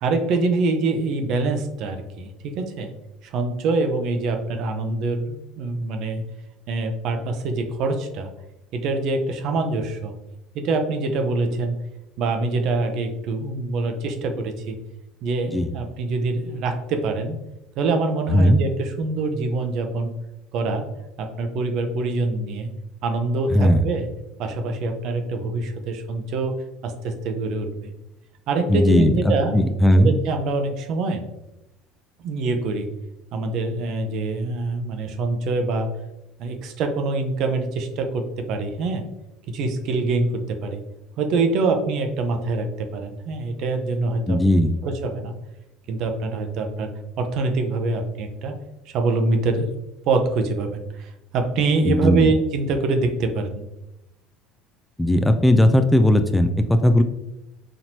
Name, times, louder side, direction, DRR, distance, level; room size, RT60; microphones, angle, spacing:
voice 1, 0.0-2.9 3.2-6.2 6.7-8.3 8.7-10.2 10.5-11.8 12.2-14.8 15.2-17.4 17.8-20.1 20.5-20.9 21.2-22.7 23.0-24.1 24.4-26.6 26.8-27.9 28.5-29.6 30.0-31.3 32.2-32.9 33.3-35.9 36.4-39.0 39.5-40.8 41.2-44.4 44.8-45.3 45.9-46.9 47.2-48.6 48.9-49.7 50.1-53.7, right 3 dB, 60° right, 6 dB, 0.6 m, -25 dB
voice 2, 23.5-23.8 28.7-29.1 29.5-30.2 44.3-44.8 51.8-52.3 55.0-57.0, equal, 5° left, 7 dB, 0.3 m, -17 dB
4.3 x 2.9 x 2.7 m, 0.89 s
hypercardioid pair, 80°, 0 cm